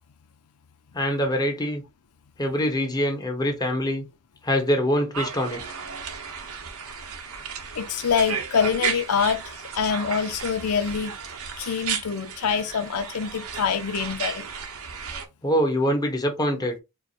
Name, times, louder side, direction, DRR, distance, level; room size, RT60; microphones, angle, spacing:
voice 1, 0.9-1.8 2.4-4.0 4.4-5.6 15.4-16.8, equal, 20° left, 1.1 m, -24 dB
sound 1, 5.1-15.3, right 6 dB, 70° right, 0.9 m, -34 dB
voice 2, 7.8-9.4 9.7-11.1 11.6-14.5, left 6 dB, 90° left, 0.6 m, -25 dB
4.6 x 2.1 x 4.1 m
head